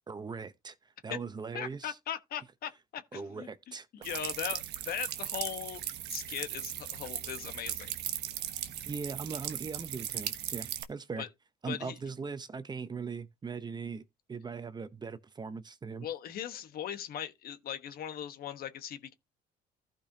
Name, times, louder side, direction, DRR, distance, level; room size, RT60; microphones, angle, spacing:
voice 1, 0.1-0.8 1.0-2.0 3.1-3.9 8.9-11.3 11.6-14.0 14.3-16.1, right 5 dB, 25° right, 0.8 m, -40 dB
voice 2, 1.5-7.9 11.2-11.3 11.6-12.0 16.0-19.1, left 9 dB, 65° left, 1.2 m, -39 dB
sound 1, 4.0-10.8, right 12 dB, 80° right, 1.2 m, -38 dB
15.0 x 5.2 x 2.8 m
cardioid pair, 110°, 17 cm